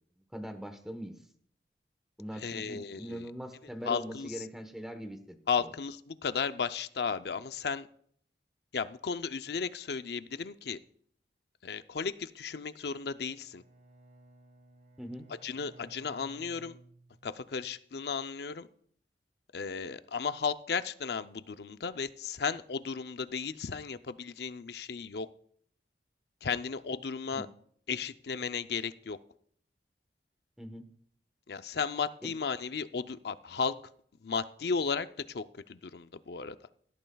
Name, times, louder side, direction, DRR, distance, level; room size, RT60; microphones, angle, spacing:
voice 1, 0.3-1.2 2.2-5.7 15.0-15.3 27.3-27.5 30.6-30.8 32.2-32.3, equal, 5° right, 7 dB, 1.1 m, -42 dB
voice 2, 2.4-3.3 3.8-4.3 5.5-7.9 8.7-10.8 11.6-13.6 15.4-16.8 17.2-18.7 19.5-25.3 26.4-27.5 27.9-29.2 31.5-33.7 34.2-36.6, left 5 dB, 70° left, 11 dB, 0.5 m, -34 dB
Bowed string instrument, 13.2-17.6, right 1 dB, 45° right, 1.7 m, -57 dB
17.0 x 12.5 x 2.3 m, 0.62 s
head